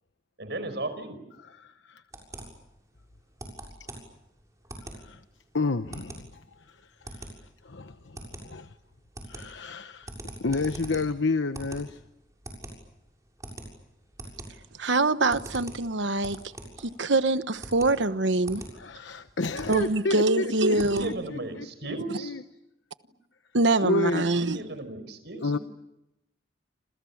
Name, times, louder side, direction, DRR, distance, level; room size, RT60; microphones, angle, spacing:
voice 1, 0.4-1.2 20.7-22.4 24.4-25.6, right 2 dB, 65° right, 5.3 m, -35 dB
voice 2, 1.6-2.0 5.0-5.2 5.5-6.1 7.2-7.3 7.6-8.7 9.3-10.1 10.4-12.0 18.8-21.1 21.6-21.7 22.2-22.4 23.8-24.3 25.4-25.6, left 3 dB, 85° left, 1.0 m, -30 dB
sound 1, 2.1-21.5, right 1 dB, 20° right, 6.8 m, -44 dB
voice 3, 14.8-16.4 16.8-18.6 19.7-21.1 23.5-24.6, right 2 dB, 85° right, 1.2 m, -24 dB
29.5 x 27.0 x 7.3 m
head